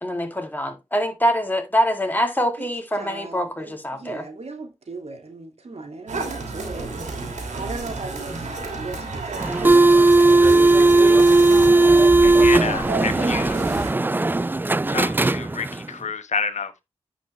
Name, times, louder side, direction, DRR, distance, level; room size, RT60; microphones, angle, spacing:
voice 1, 0.0-4.3, equal, 15° left, 2.4 m, -24 dB
voice 2, 2.9-6.9 7.5-9.9, right 3 dB, 60° right, 2.1 m, -37 dB
sound 1, 6.1-13.9, right 3 dB, 85° right, 2.6 m, -31 dB
sound 2, 9.4-15.9, right 2 dB, 15° right, 0.4 m, -16 dB
voice 3, 12.2-13.7 14.9-16.8, left 5 dB, 75° left, 1.2 m, -29 dB
9.9 x 5.4 x 3.2 m
cardioid pair, 45°, 12 cm